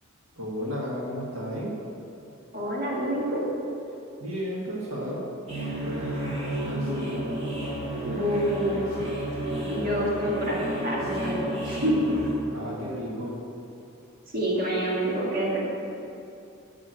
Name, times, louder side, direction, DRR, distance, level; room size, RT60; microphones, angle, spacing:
voice 1, 0.4-1.7 4.2-5.3 5.7-6.3 6.6-7.1 12.5-13.4, equal, 80° right, -5 dB, 1.7 m, -33 dB
voice 2, 2.5-3.4 8.0-8.8 9.7-12.1 14.3-15.6, equal, 45° right, -5 dB, 1.8 m, -27 dB
Evil mouth ensemble, 5.5-12.3, right 1 dB, 30° right, 2.2 m, -31 dB
11.0 x 3.8 x 7.6 m, 2.7 s
head